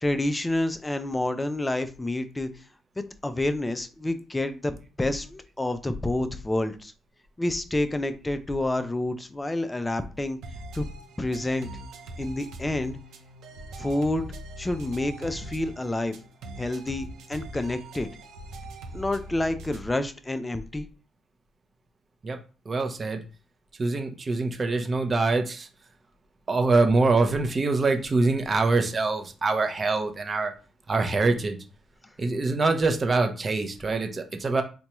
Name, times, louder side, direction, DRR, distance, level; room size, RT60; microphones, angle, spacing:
voice 1, 0.0-2.5 3.2-6.9 7.4-10.4 10.7-10.9 11.2-11.7 12.2-13.0 13.8-14.3 14.6-16.2 16.6-18.1 18.9-20.9, left 1 dB, 15° left, 9 dB, 0.5 m, -28 dB
sound 1, 10.4-20.0, right 1 dB, 85° right, 0.6 m, -42 dB
voice 2, 22.7-23.2 23.8-25.7 26.5-30.5 30.9-31.6 32.2-34.6, right 3 dB, 35° right, 6 dB, 0.6 m, -24 dB
4.2 x 2.2 x 3.0 m, 0.35 s
cardioid pair, 90°, 0 cm